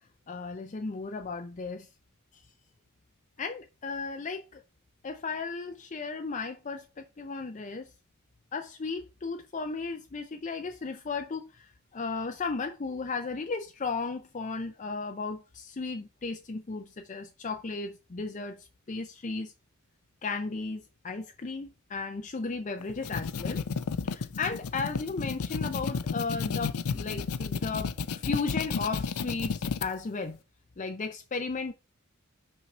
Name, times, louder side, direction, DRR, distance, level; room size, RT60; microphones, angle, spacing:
voice 1, 0.3-1.9 3.4-4.6 5.0-7.9 8.5-19.5 20.2-23.7 24.0-30.4 30.8-31.7, left 4 dB, 35° left, 0.5 m, -35 dB
sound 1, 22.8-29.9, left 5 dB, 85° left, 0.5 m, -32 dB
5.8 x 4.5 x 5.3 m
head